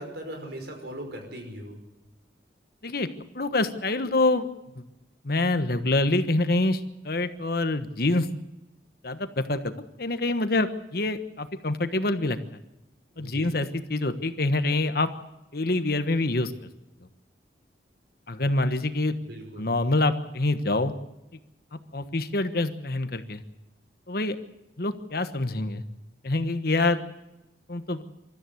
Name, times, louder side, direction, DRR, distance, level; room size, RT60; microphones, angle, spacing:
voice 1, 0.0-1.8 13.1-13.5 19.3-19.7, right 1 dB, 65° right, 4 dB, 5.6 m, -39 dB
voice 2, 3.3-4.5 4.8-4.9 5.2-8.3 9.0-9.7 10.0-12.4 13.2-15.1 15.5-16.5 18.3-19.2 19.6-20.9 21.9-23.4 24.1-24.4 24.8-25.8 26.2-27.0 27.7-28.0, left 2 dB, 60° left, 10 dB, 1.3 m, -26 dB
24.5 x 13.5 x 8.0 m, 0.95 s
head